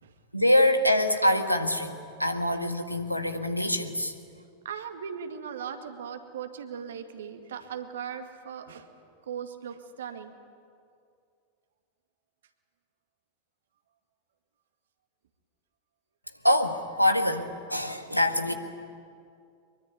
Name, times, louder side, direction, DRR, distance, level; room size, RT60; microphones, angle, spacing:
voice 1, 0.3-4.1 16.4-18.5, left 1 dB, 90° left, 6 dB, 1.8 m, -25 dB
voice 2, 4.6-8.9 9.3-10.3, right 7 dB, 65° right, 7 dB, 2.1 m, -38 dB
24.0 x 23.0 x 9.5 m, 2.4 s
figure-of-eight pair, 90°, 0 cm